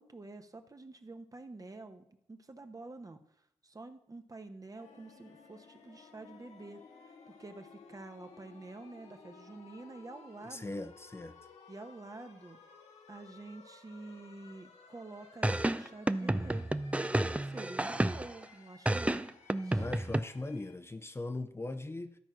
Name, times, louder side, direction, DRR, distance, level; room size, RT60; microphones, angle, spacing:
voice 1, 0.0-3.2 3.6-6.8 7.3-10.9 11.7-12.6 13.1-16.7 17.4-19.2 19.6-19.8, right 2 dB, 30° right, 7 dB, 1.1 m, -48 dB
sound 1, 4.8-20.7, left 5 dB, 85° left, 1.3 m, -57 dB
voice 2, 10.5-11.3 19.7-22.1, left 2 dB, 25° left, 9 dB, 0.7 m, -39 dB
sound 2, 15.4-18.4 18.8-20.2, right 1 dB, 10° right, 0.5 m, -31 dB
12.0 x 4.4 x 6.1 m, 0.74 s
cardioid pair, 50°, 11 cm